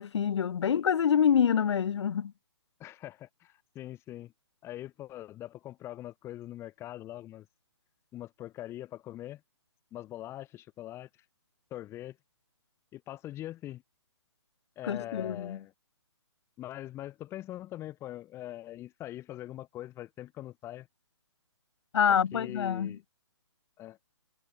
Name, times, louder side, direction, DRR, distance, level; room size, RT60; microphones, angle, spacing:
voice 1, 0.0-2.3 14.9-15.6 21.9-23.0, left 8 dB, 75° left, 0.4 m, -26 dB
voice 2, 2.8-4.3 4.6-7.5 8.1-9.4 9.9-11.1 11.7-12.2 12.9-13.8 14.8-15.7 16.6-20.9 22.1-23.0 23.8-24.0, left 14 dB, 15° left, 1.4 m, -42 dB
hypercardioid pair, 145°, 15 cm